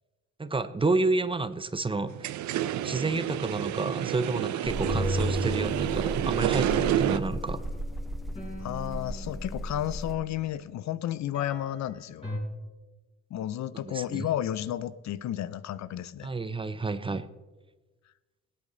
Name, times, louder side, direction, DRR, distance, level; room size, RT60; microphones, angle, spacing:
voice 1, 0.4-2.2 2.8-7.6 13.8-14.3 16.2-17.3, right 3 dB, 15° right, 13 dB, 0.6 m, -30 dB
sound 1, 2.1-7.2, right 12 dB, 75° right, 0.6 m, -29 dB
sound 2, 4.6-10.2, equal, ahead, 0.9 m, -36 dB
sound 3, 4.7-10.3 11.3-11.9 12.2-12.4, left 1 dB, 20° left, 4.7 m, -36 dB
voice 2, 8.6-12.3 13.3-16.3, left 12 dB, 65° left, 17 dB, 0.6 m, -32 dB
19.0 x 8.5 x 3.9 m, 1.2 s
cardioid pair, 90°, 30 cm